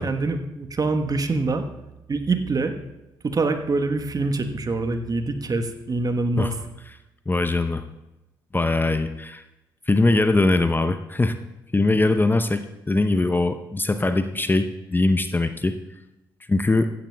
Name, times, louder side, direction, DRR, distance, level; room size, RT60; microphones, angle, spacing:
voice 1, 0.0-1.6 2.1-2.7 3.2-6.5, right 3 dB, 35° right, 7 dB, 1.2 m, -25 dB
voice 2, 7.3-7.8 8.5-9.4 9.9-11.4 11.7-15.8 16.5-16.9, left 2 dB, 20° left, 9 dB, 0.7 m, -21 dB
16.0 x 12.0 x 2.3 m, 0.97 s
hypercardioid pair, 45°, 11 cm